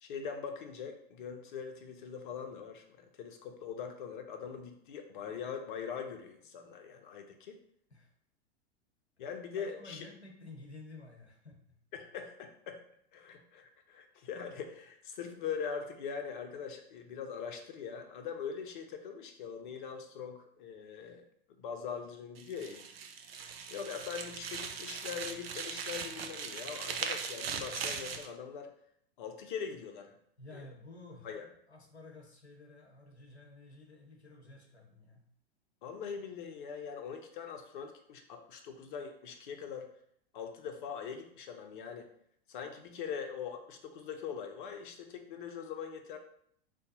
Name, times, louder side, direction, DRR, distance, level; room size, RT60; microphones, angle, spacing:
voice 1, 0.0-7.6 9.2-10.0 11.9-12.8 13.1-21.2 21.6-22.9 23.7-28.7 29.2-30.1 30.5-30.6 31.2-31.5 35.8-39.9 40.3-42.1 42.5-46.2, left 6 dB, 50° left, 5 dB, 0.6 m, -42 dB
voice 2, 9.6-11.8 30.4-31.3 31.7-35.2, left 2 dB, 85° left, 1 dB, 0.8 m, -52 dB
sound 1, 22.4-28.3, right 6 dB, 65° right, 0.5 m, -39 dB
2.7 x 2.2 x 3.9 m, 0.68 s
figure-of-eight pair, 90°, 32 cm